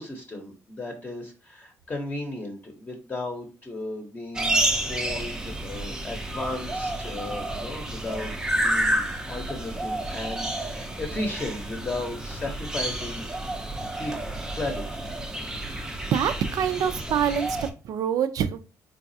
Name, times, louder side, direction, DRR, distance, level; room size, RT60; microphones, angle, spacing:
voice 1, 0.0-4.6 4.9-8.3 8.6-13.3 14.0-14.1 14.5-15.1, left 2 dB, 25° left, 1 dB, 0.7 m, -35 dB
sound 1, 4.3-17.7, right 1 dB, 10° right, 0.5 m, -30 dB
voice 2, 15.6-17.5 17.8-18.6, right 8 dB, 65° right, 11 dB, 0.4 m, -26 dB
3.9 x 2.3 x 2.6 m, 0.33 s
cardioid pair, 100°, 7 cm